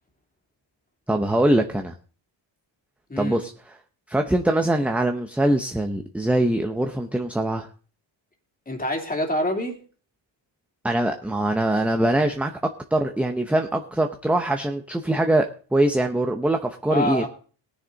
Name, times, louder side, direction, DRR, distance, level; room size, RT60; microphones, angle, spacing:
voice 1, 1.1-1.9 3.2-3.5 4.1-7.7 10.8-12.5 12.9-15.5 15.7-17.3, right 1 dB, 5° right, 4 dB, 0.8 m, -22 dB
voice 2, 3.1-3.5 8.7-9.8 16.9-17.3, left 1 dB, 20° left, 3 dB, 2.7 m, -26 dB
19.0 x 10.0 x 4.0 m, 0.41 s
wide cardioid pair, 150°, 46 cm